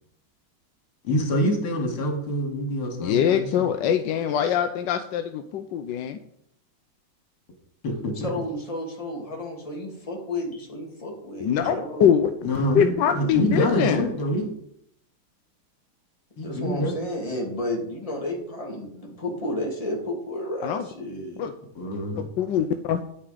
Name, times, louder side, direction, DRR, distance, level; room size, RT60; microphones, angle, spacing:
voice 1, 1.0-3.7 7.8-8.3 12.4-14.5 16.4-17.0 21.7-22.2, equal, 85° left, 2 dB, 3.1 m, -26 dB
voice 2, 3.0-6.2 11.4-12.3 12.7-14.0 20.6-20.8 21.4-21.5 22.4-23.0, left 8 dB, 70° left, 7 dB, 1.2 m, -23 dB
voice 3, 8.2-12.0 16.4-21.4, left 1 dB, 15° left, 0 dB, 2.4 m, -32 dB
10.0 x 8.5 x 5.0 m, 0.71 s
omnidirectional pair, 2.3 m